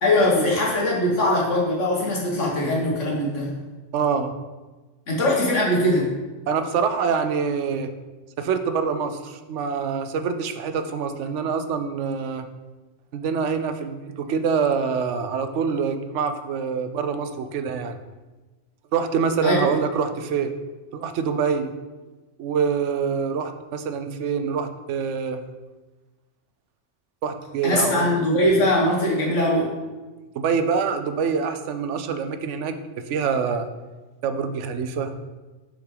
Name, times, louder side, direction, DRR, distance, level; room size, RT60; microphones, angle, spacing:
voice 1, 0.0-3.5 5.1-6.1 19.4-19.7 27.6-29.7, left 1 dB, 90° left, -3 dB, 2.0 m, -21 dB
voice 2, 3.9-4.3 6.5-7.9 8.4-12.5 13.1-18.0 18.9-20.5 20.9-21.7 22.4-25.4 27.2-28.1 30.4-33.7 34.2-35.1, right 6 dB, 75° right, 9 dB, 0.9 m, -25 dB
6.2 x 5.8 x 3.9 m, 1.2 s
omnidirectional pair, 1.2 m